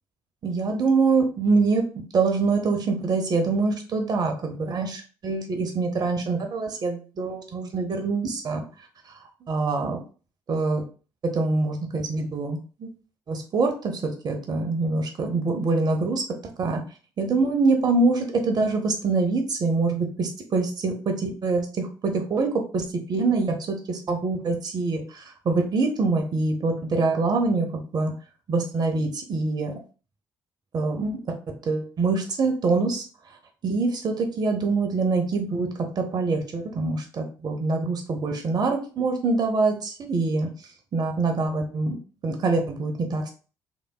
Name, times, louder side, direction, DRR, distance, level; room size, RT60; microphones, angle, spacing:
voice 1, 0.4-1.8 2.1-8.7 9.1-9.2 9.5-10.0 10.5-10.8 11.3-12.9 13.3-16.2 16.6-16.8 17.2-28.1 28.5-29.8 30.7-31.4 31.7-33.0 33.6-35.7 36.0-40.5 40.9-42.0 42.2-43.3, right 3 dB, 45° right, 4 dB, 0.8 m, -25 dB
3.9 x 3.4 x 2.3 m, 0.37 s
hypercardioid pair, 50°, 10 cm